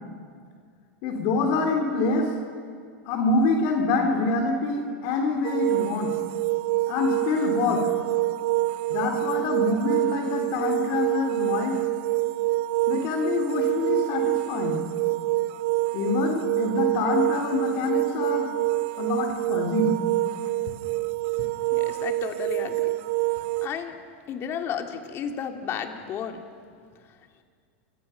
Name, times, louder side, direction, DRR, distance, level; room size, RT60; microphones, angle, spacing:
voice 1, 1.0-2.3 3.0-6.1 6.9-7.9 8.9-11.8 12.9-14.8 15.9-18.5 19.0-20.0, left 3 dB, 55° left, 2 dB, 3.4 m, -25 dB
sound 1, 5.4-23.7, right 19 dB, 60° right, 0.6 m, -26 dB
voice 2, 21.7-22.8 23.3-24.0 24.3-26.4, left 8 dB, 40° left, 4 dB, 2.6 m, -33 dB
28.0 x 23.0 x 5.9 m, 2.1 s
hypercardioid pair, 120°, 7 cm